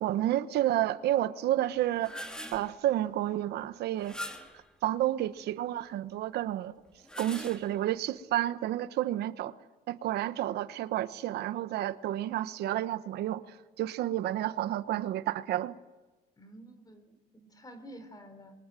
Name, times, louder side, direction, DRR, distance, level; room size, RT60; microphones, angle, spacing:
voice 1, 0.0-2.2 2.5-4.2 4.8-6.7 7.2-9.5 9.9-15.8, right 13 dB, 75° right, 1.2 m, -30 dB
sound 1, 1.8-2.7 4.0-4.7 6.9-7.9, equal, 5° left, 2.5 m, -42 dB
voice 2, 16.4-18.5, right 1 dB, 20° left, 4.1 m, -50 dB
27.0 x 23.5 x 9.1 m
cardioid pair, 110°, 17 cm